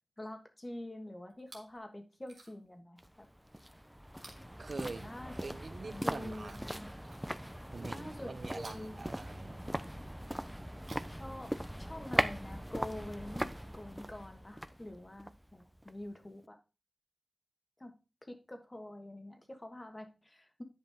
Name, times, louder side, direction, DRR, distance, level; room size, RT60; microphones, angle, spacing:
voice 1, 0.2-3.3 4.8-5.5 5.9-6.9 7.9-9.0 11.1-16.6 17.8-17.9 18.2-20.6, left 1 dB, 20° left, 1.4 m, -46 dB
Chewing mastication, 1.3-1.8 2.2-2.8 4.1-5.5 6.4-7.7 8.5-9.8 10.7-12.1 13.0-13.1, right 3 dB, 90° right, 2.0 m, -58 dB
sound 1, 3.0-16.1 16.4-16.5, equal, 5° right, 0.5 m, -40 dB
voice 2, 4.6-5.1 5.4-6.6 7.7-9.6, right 3 dB, 55° right, 0.5 m, -44 dB
10.0 x 5.3 x 3.5 m
wide cardioid pair, 85°, 0 cm